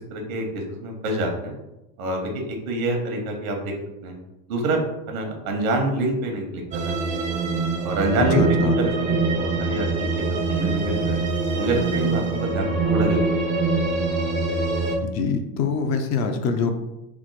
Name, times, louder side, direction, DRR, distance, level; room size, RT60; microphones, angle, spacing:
voice 1, 0.1-1.5 2.0-3.7 4.0-4.1 4.5-4.8 5.1-7.2 7.8-8.4 8.8-11.2 11.6-13.5, right 2 dB, 90° right, 2 dB, 0.9 m, -27 dB
sound 1, 6.7-15.0, right 3 dB, 20° right, 0.3 m, -24 dB
voice 2, 8.4-8.8 15.0-16.7, left 5 dB, 45° left, 6 dB, 0.4 m, -24 dB
3.3 x 2.0 x 3.1 m, 0.96 s
supercardioid pair, 110°, 41 cm